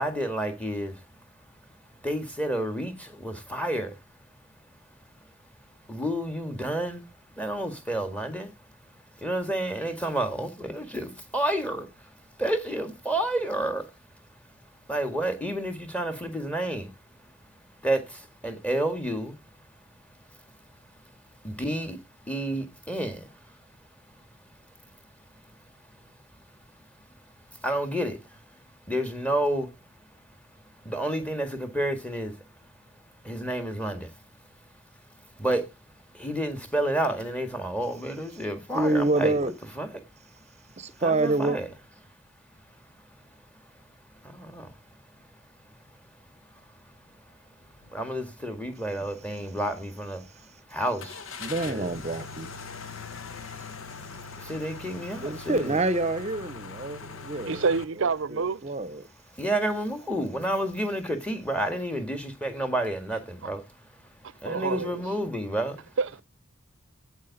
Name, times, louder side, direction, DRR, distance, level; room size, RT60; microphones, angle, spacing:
voice 1, 0.0-4.0 4.7-5.3 5.6-8.6 8.8-14.6 14.9-19.8 20.1-23.7 24.1-24.9 25.4-26.3 26.6-27.1 27.5-29.7 30.0-34.3 34.6-34.7 35.1-39.3 39.8-41.7 42.7-43.8 44.1-45.3 45.6-51.3 51.6-51.9 53.4-53.9 54.2-55.7 59.3-65.9, right 1 dB, 5° left, 1.8 m, -32 dB
voice 2, 38.7-39.5 40.8-41.6 51.4-52.5 53.6-53.7 55.2-57.6 58.0-59.0, right 2 dB, 35° right, 0.8 m, -27 dB
sound 1, 47.7-48.0 48.4-48.5 51.0-57.8, left 5 dB, 75° left, 1.0 m, -41 dB
voice 3, 57.5-58.6 63.4-63.5 64.4-65.0 66.0-66.2, right 4 dB, 65° right, 0.6 m, -27 dB
12.0 x 8.4 x 4.0 m
head